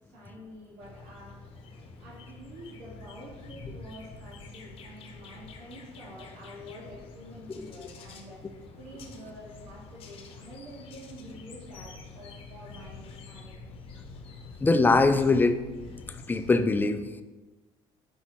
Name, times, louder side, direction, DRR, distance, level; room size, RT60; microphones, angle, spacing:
voice 1, 0.1-1.3 2.0-13.7, equal, 85° right, -7 dB, 1.6 m, -47 dB
sound 1, 0.8-16.6, left 4 dB, 50° left, 0.8 m, -47 dB
voice 2, 14.6-15.6 16.3-17.1, left 3 dB, 15° left, 9 dB, 0.4 m, -22 dB
6.1 x 5.4 x 2.9 m, 1.2 s
cardioid pair, 115°, 12 cm